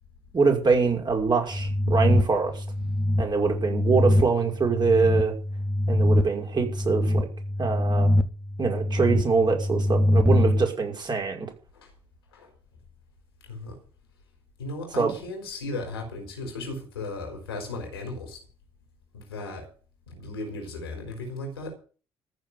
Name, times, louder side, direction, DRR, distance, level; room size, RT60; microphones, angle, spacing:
voice 1, 0.3-2.6 3.2-5.3 5.9-7.3 7.6-8.1 8.6-11.5 15.0-15.1, right 4 dB, 35° right, 5.6 m, -24 dB
sound 1, 1.5-10.7, left 1 dB, 5° right, 2.0 m, -24 dB
voice 2, 2.8-3.3 10.1-10.2 11.7-11.9 12.3-12.5 13.4-13.8 14.6-18.4 19.1-19.7 20.1-21.7, left 2 dB, 85° left, 4.5 m, -36 dB
14.5 x 7.0 x 9.3 m
hypercardioid pair, 50°, 12 cm